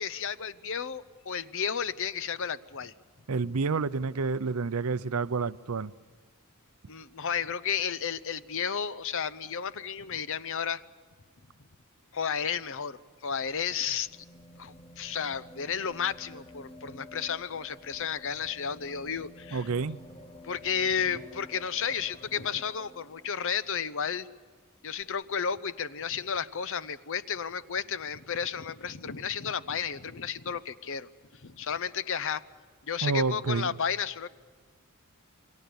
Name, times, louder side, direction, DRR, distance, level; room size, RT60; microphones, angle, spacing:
voice 1, 0.0-2.9 6.9-10.8 12.1-14.1 14.6-19.6 20.4-24.3 24.8-32.4 32.9-34.3, left 7 dB, 65° left, 15 dB, 0.8 m, -32 dB
voice 2, 3.3-5.9 19.5-20.0 33.0-33.8, right 4 dB, 75° right, 16 dB, 0.6 m, -29 dB
sound 1, 13.0-23.8 25.0-25.1, left 1 dB, 25° left, 0.8 m, -51 dB
28.5 x 23.0 x 7.0 m, 1.5 s
head